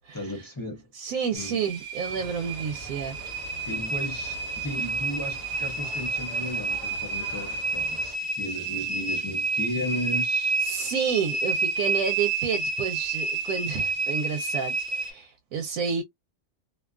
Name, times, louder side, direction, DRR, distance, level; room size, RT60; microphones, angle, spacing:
voice 1, 0.1-0.9 1.3-1.6 3.3-3.4 3.7-10.6, equal, 25° left, 0.4 m, -35 dB
voice 2, 0.9-3.5 10.6-16.0, right 6 dB, 85° right, 1.0 m, -30 dB
sound 1, 1.4-15.1, right 3 dB, 50° right, 0.7 m, -30 dB
sound 2, 2.0-8.2, equal, 20° right, 0.9 m, -44 dB
2.6 x 2.3 x 2.2 m
omnidirectional pair, 1.4 m